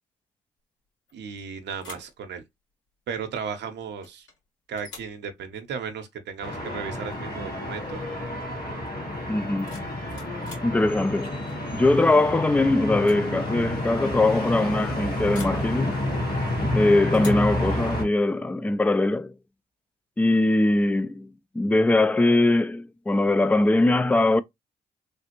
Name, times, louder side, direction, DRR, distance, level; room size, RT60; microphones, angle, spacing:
sound 1, 1.1-1.4 1.8-2.2 4.0-4.4 4.8-5.2 7.0-7.2 7.6-7.9 9.4-10.8 12.2-12.5 12.9-13.3 13.5-13.6 15.3-15.7 17.1-17.5, left 3 dB, 75° left, 1.8 m, -45 dB
voice 1, 1.1-2.4 3.1-4.3 4.7-8.0, right 6 dB, 65° right, 0.7 m, -35 dB
sound 2, 6.4-18.0, left 1 dB, 50° left, 1.5 m, -29 dB
voice 2, 9.3-9.8 10.6-11.4 11.7-16.0 16.6-19.3 20.2-21.3 21.5-24.4, left 2 dB, 5° left, 0.3 m, -21 dB
3.2 x 2.4 x 2.9 m
hypercardioid pair, 50°, 20 cm